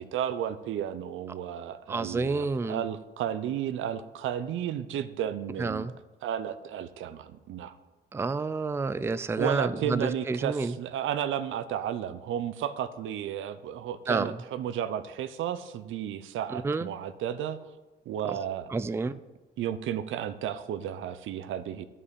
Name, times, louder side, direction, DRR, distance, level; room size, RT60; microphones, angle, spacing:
voice 1, 0.0-5.9 6.2-7.8 9.4-17.6 18.1-18.7 19.0-19.2 19.6-21.8, right 9 dB, 80° right, 12 dB, 0.7 m, -33 dB
voice 2, 1.9-2.8 5.6-5.9 8.1-10.7 14.1-14.3 16.5-16.9 18.7-19.1, right 3 dB, 10° right, 14 dB, 0.4 m, -29 dB
11.0 x 5.5 x 8.1 m, 1.2 s
cardioid pair, 90°, 20 cm